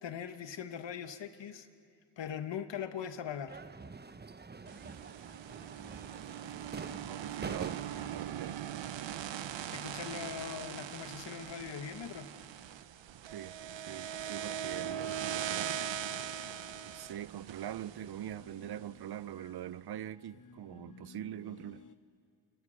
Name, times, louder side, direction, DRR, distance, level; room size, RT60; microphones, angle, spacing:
voice 1, 0.0-1.7 2.2-3.6 9.7-12.3, left 8 dB, 75° left, 1.4 m, -41 dB
sound 1, 3.5-8.7, right 4 dB, 25° right, 0.9 m, -46 dB
sound 2, 4.7-18.8, right 9 dB, 80° right, 0.9 m, -41 dB
voice 2, 7.1-8.6 13.3-13.5 13.9-15.9 16.9-21.8, right 11 dB, 60° right, 0.6 m, -43 dB
sound 3, 15.5-22.0, left 5 dB, 45° left, 1.4 m, -58 dB
29.5 x 27.5 x 6.5 m
cardioid pair, 70°, 44 cm